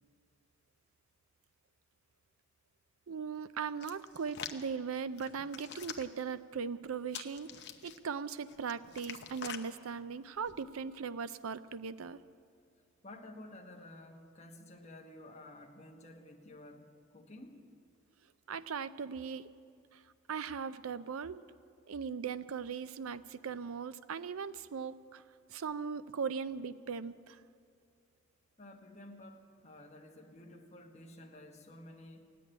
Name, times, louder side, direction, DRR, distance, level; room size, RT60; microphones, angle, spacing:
voice 1, 3.1-7.5 7.8-12.2 18.5-19.5 19.9-20.0 20.3-21.4 21.9-25.2 25.5-27.4, right 6 dB, 85° right, 14 dB, 0.5 m, -39 dB
Hands, 3.8-4.6 5.2-6.2 7.1-8.0 8.5-9.6 10.3-10.6, left 8 dB, 55° left, 0.8 m, -45 dB
voice 2, 13.0-17.6 28.6-32.3, left 1 dB, 30° left, 1 dB, 1.4 m, -52 dB
16.0 x 8.4 x 10.0 m, 2.2 s
head